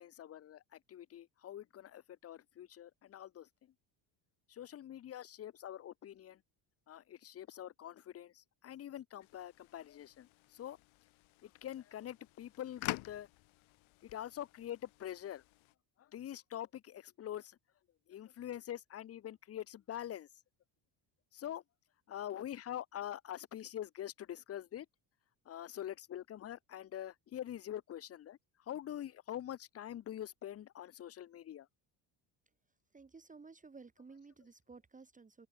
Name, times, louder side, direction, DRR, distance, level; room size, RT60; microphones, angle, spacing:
voice 1, 0.0-3.7 4.5-6.4 6.9-10.8 11.4-13.3 14.0-15.4 16.0-17.6 18.1-20.3 21.3-21.6 22.1-24.9 25.5-31.7, left 11 dB, 30° left, 0.7 m, -45 dB
sound 1, 9.2-15.8, left 23 dB, 75° left, 1.0 m, -48 dB
voice 2, 32.9-35.5, right 4 dB, 15° right, 2.1 m, -55 dB
open air
cardioid pair, 150°, 47 cm